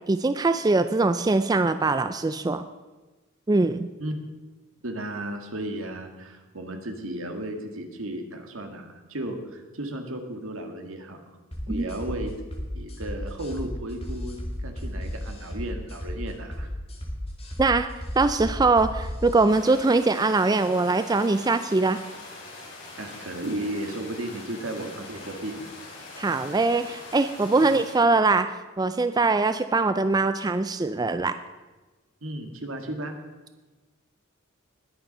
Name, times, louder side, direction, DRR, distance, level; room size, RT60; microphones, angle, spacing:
voice 1, 0.1-2.6 3.5-3.9 11.7-11.9 17.6-17.9 18.2-22.0 26.2-31.3, right 3 dB, 20° right, 10 dB, 0.3 m, -22 dB
voice 2, 4.8-11.2 11.7-12.3 12.7-16.7 23.0-25.7 27.6-27.7 32.2-33.2, right 1 dB, 75° right, 4 dB, 2.0 m, -34 dB
sound 1, 11.5-19.5, equal, 30° left, 2.6 m, -34 dB
sound 2, 19.5-27.9, left 2 dB, 60° left, 5.1 m, -43 dB
20.0 x 7.0 x 5.5 m, 1.2 s
head